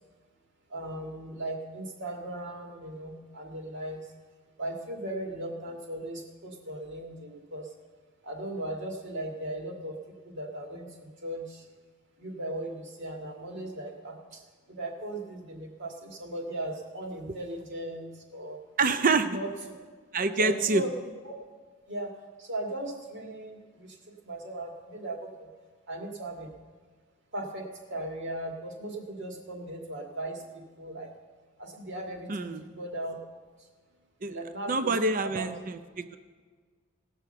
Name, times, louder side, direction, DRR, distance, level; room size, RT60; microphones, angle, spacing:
voice 1, 0.7-4.0 4.6-7.7 8.2-10.0 10.2-11.7 12.2-14.4 14.7-18.6 19.2-19.5 20.4-20.9 21.2-21.3 21.9-22.1 22.4-24.0 24.2-25.5 25.9-26.5 27.3-31.1 31.6-33.2 34.2-35.5, right 1 dB, 60° right, 1 dB, 2.0 m, -37 dB
voice 2, 18.8-19.3 20.1-20.8 32.3-32.6 34.2-34.4 34.7-36.2, right 3 dB, 45° right, 10 dB, 0.6 m, -26 dB
17.5 x 6.2 x 6.8 m, 1.5 s
head